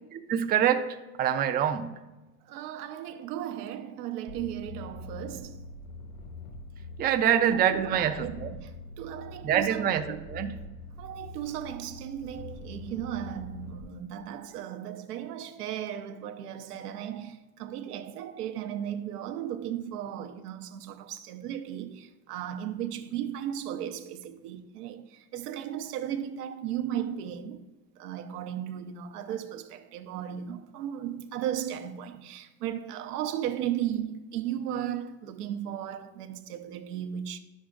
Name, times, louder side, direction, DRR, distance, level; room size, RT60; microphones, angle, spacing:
voice 1, 0.1-2.0 7.0-8.6 9.4-10.6, right 9 dB, 20° right, 0.4 m, -26 dB
voice 2, 2.5-5.7 7.2-10.2 11.0-27.7 28.0-37.4, right 10 dB, 85° right, 0.7 m, -36 dB
sound 1, 4.3-13.8, left 2 dB, 50° left, 1.2 m, -44 dB
10.0 x 6.3 x 2.4 m
hypercardioid pair, 90°, 45 cm